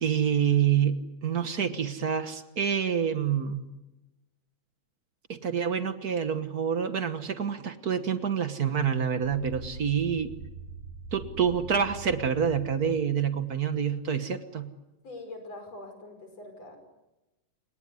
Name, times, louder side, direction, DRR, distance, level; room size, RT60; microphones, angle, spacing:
voice 1, 0.0-3.6 5.3-10.3 11.1-14.7, right 7 dB, 55° right, 10 dB, 1.1 m, -27 dB
sound 1, 9.2-13.8, right 4 dB, 80° right, 6.6 m, -44 dB
voice 2, 15.0-16.8, left 2 dB, 55° left, 6 dB, 6.6 m, -43 dB
29.5 x 18.5 x 9.8 m, 1.0 s
omnidirectional pair, 3.4 m